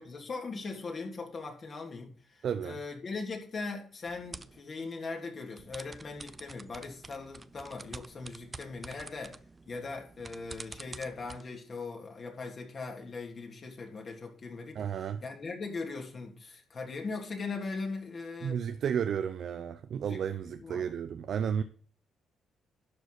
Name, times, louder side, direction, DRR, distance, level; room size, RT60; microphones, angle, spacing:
voice 1, 0.0-9.4 9.7-18.6 20.0-20.9, left 4 dB, 40° left, 2.9 m, -40 dB
voice 2, 2.4-2.8 14.7-15.2 18.4-21.6, right 8 dB, 65° right, 0.7 m, -32 dB
sound 1, 4.0-4.6 5.6-11.4, right 3 dB, 25° right, 0.6 m, -48 dB
11.5 x 4.9 x 6.0 m
cardioid pair, 90°, 0 cm